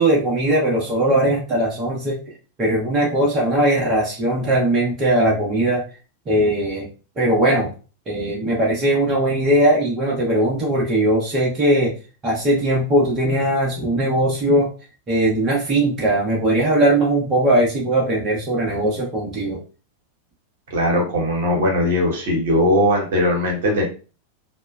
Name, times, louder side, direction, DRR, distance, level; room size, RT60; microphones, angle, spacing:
voice 1, 0.0-2.2 2.6-5.8 6.3-6.9 7.2-7.7 8.1-11.9 12.2-14.7 15.1-19.6, right 1 dB, 25° right, -3 dB, 0.8 m, -19 dB
voice 2, 20.7-23.8, left 1 dB, 55° right, 0 dB, 1.0 m, -19 dB
2.9 x 2.1 x 2.2 m, 0.35 s
figure-of-eight pair, 90°, 0 cm